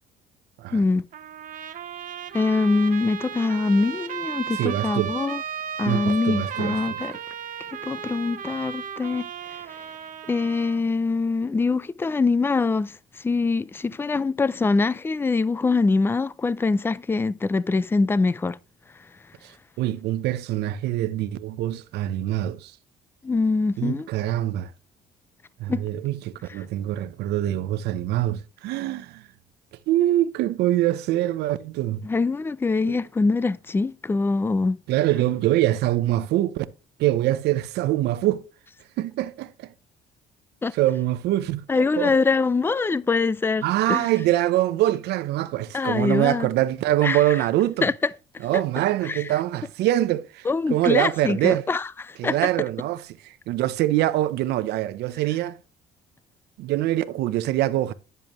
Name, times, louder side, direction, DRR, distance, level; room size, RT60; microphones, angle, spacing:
voice 1, 0.7-1.0 2.3-5.4 5.8-7.2 7.8-9.3 10.3-13.0 13.2-18.6 23.2-24.1 25.7-25.8 32.0-34.8 40.6-40.7 41.7-44.1 45.7-46.5 47.0-47.4 47.8-47.9 48.5-49.2 50.5-52.4, left 3 dB, 15° left, 0.4 m, -24 dB
Trumpet, 1.1-10.8, right 8 dB, 55° right, 1.0 m, -35 dB
voice 2, 4.6-5.1 5.9-7.0 19.8-22.7 23.8-24.7 25.6-29.2 29.9-32.0 32.8-33.0 34.9-36.7 37.0-38.4 39.0-39.7 40.7-41.6 42.0-42.1 43.6-47.9 48.4-51.7 52.2-55.6 56.6-57.9, right 14 dB, 80° right, 0.7 m, -24 dB
10.5 x 6.9 x 3.0 m
cardioid pair, 110°, 17 cm